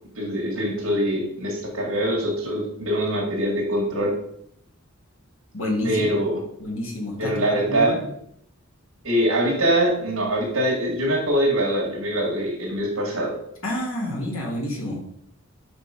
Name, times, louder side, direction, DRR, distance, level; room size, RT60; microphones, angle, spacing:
voice 1, 0.2-4.1 5.8-6.4 7.2-7.9 9.0-13.4, right 1 dB, 75° right, -3 dB, 1.9 m, -23 dB
voice 2, 5.5-6.1 6.6-8.1 13.6-15.0, left 1 dB, 70° left, -3 dB, 2.1 m, -28 dB
5.3 x 5.2 x 5.0 m, 0.71 s
head